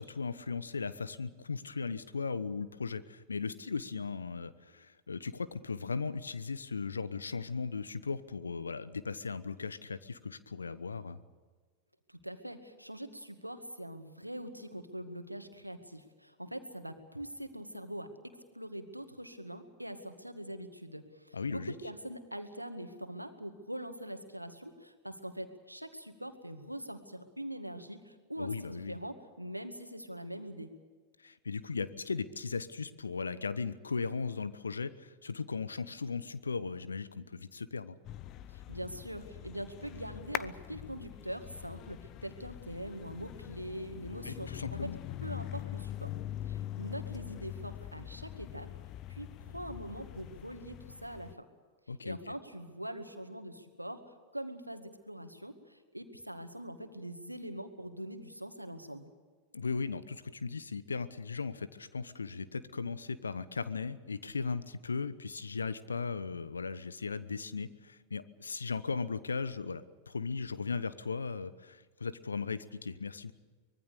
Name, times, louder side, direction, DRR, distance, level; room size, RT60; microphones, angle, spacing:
voice 1, 0.0-11.2 21.3-21.7 28.4-29.0 31.2-38.0 44.2-45.0 51.9-52.2 59.5-73.3, left 4 dB, 75° left, 15 dB, 1.0 m, -37 dB
voice 2, 12.1-30.7 38.5-44.9 45.2-46.1 46.5-48.7 49.1-51.5 52.0-59.1, right 1 dB, 90° right, 8 dB, 2.0 m, -43 dB
sound 1, 38.0-51.3, left 13 dB, 40° left, 0.8 m, -43 dB
24.5 x 21.5 x 6.8 m, 1.5 s
figure-of-eight pair, 90°, 0 cm